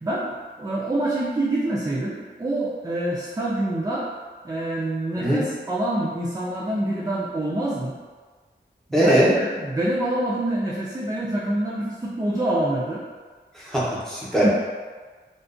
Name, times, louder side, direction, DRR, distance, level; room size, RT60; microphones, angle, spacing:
voice 1, 0.0-4.1 4.4-7.9 8.9-13.0 14.4-14.5, right 1 dB, 20° right, -5 dB, 0.3 m, -26 dB
voice 2, 8.9-9.3 13.5-14.5, right 1 dB, ahead, -7 dB, 0.7 m, -20 dB
2.4 x 2.1 x 2.4 m, 1.4 s
wide cardioid pair, 50°, 20 cm